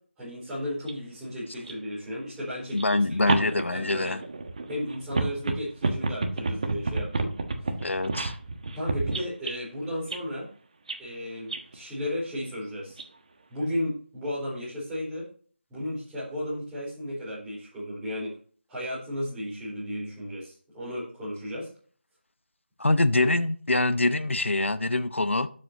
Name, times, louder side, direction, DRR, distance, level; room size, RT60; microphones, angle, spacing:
voice 1, 0.2-4.2 4.7-7.3 7.6-7.7 8.7-10.5 11.0-13.0 13.5-15.3 15.7-18.3 18.7-21.7, equal, 5° right, 4.3 m, -34 dB
sound 1, 0.9-1.0 1.6-1.7 2.7-9.5 10.1-10.2 10.9-11.0 11.5-11.8 12.9-13.0 13.6-13.7, right 3 dB, 35° right, 1.2 m, -30 dB
voice 2, 2.7-4.2 7.8-8.4 22.8-25.5, left 2 dB, 85° left, 0.8 m, -24 dB
12.5 x 7.6 x 2.8 m
figure-of-eight pair, 170°, 7 cm